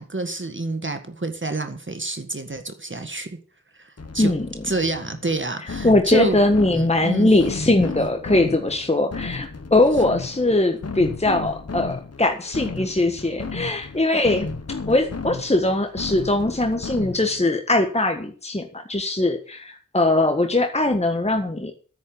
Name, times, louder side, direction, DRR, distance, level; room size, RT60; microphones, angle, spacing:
voice 1, 0.0-3.3 3.7-4.3 4.6-6.4 6.7-7.3, right 3 dB, 35° right, 7 dB, 1.8 m, -28 dB
sound 1, 4.0-17.5, left 4 dB, 50° left, 1.4 m, -34 dB
voice 2, 4.2-4.6 5.6-14.5 14.9-21.7, left 2 dB, 20° left, 4 dB, 1.6 m, -21 dB
9.9 x 9.1 x 7.9 m, 0.42 s
wide cardioid pair, 70°, 33 cm